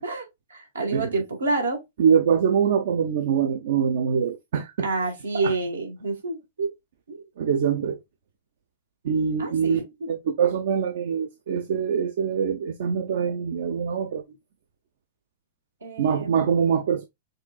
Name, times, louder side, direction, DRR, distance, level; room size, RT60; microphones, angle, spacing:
voice 1, 0.0-1.8 4.8-6.7 7.1-7.2 9.4-10.1 15.8-16.7, right 3 dB, 85° right, 1.6 m, -29 dB
voice 2, 2.0-4.9 5.3-5.5 7.4-8.0 9.0-9.8 10.1-14.2 16.0-17.0, right 7 dB, 65° right, 0.6 m, -24 dB
6.4 x 2.6 x 2.4 m
hypercardioid pair, 105°, 0 cm